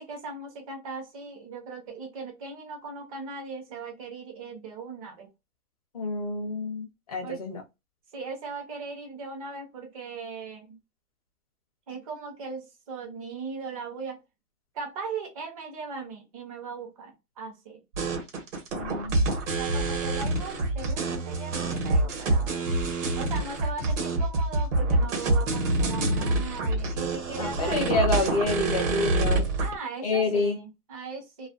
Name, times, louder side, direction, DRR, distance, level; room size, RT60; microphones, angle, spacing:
voice 1, 0.0-5.3 7.2-7.4 8.1-10.8 11.9-14.2 14.7-17.8 19.6-22.7 23.2-27.9 29.6-31.5, right 4 dB, 25° right, 0.7 m, -38 dB
voice 2, 5.9-7.6 18.7-19.3 27.4-29.5 30.0-30.6, left 2 dB, 25° left, 0.5 m, -28 dB
sound 1, 17.9-29.7, right 2 dB, 55° right, 1.1 m, -26 dB
2.3 x 2.2 x 2.4 m
hypercardioid pair, 165°, 44 cm